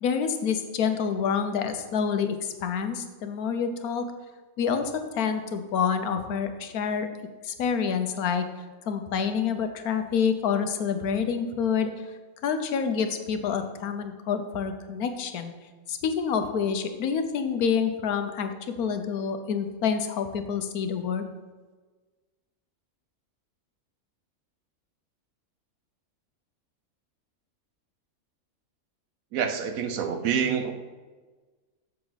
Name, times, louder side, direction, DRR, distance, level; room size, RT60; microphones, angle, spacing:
voice 1, 0.0-2.4 2.6-4.1 4.6-7.1 7.4-8.5 8.9-11.9 12.4-15.5 15.9-18.5 18.8-21.2, left 6 dB, 85° left, 8 dB, 1.3 m, -27 dB
voice 2, 29.3-30.7, right 7 dB, 70° right, 7 dB, 1.2 m, -27 dB
7.8 x 7.1 x 4.0 m, 1.4 s
omnidirectional pair, 1.5 m